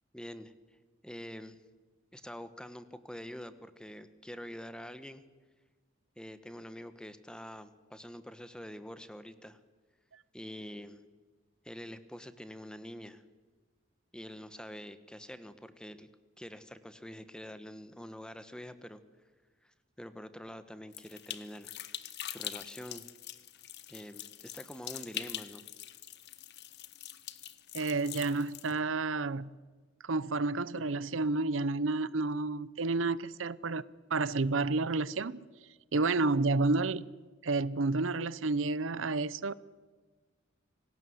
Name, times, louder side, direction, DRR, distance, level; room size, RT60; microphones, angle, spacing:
voice 1, 0.1-0.5 1.0-1.6 2.1-5.2 6.2-9.6 10.3-11.0 11.6-13.2 14.1-16.1 16.4-19.0 19.6-21.7 22.2-23.1 23.9-25.6, equal, 5° left, 12 dB, 1.2 m, -46 dB
sound 1, 20.9-28.8, left 12 dB, 60° left, 1.2 m, -44 dB
voice 2, 27.7-29.5 30.0-33.8 34.1-35.4 35.9-37.0 37.4-39.5, right 3 dB, 80° right, 19 dB, 0.8 m, -30 dB
26.5 x 18.5 x 8.0 m, 1.4 s
head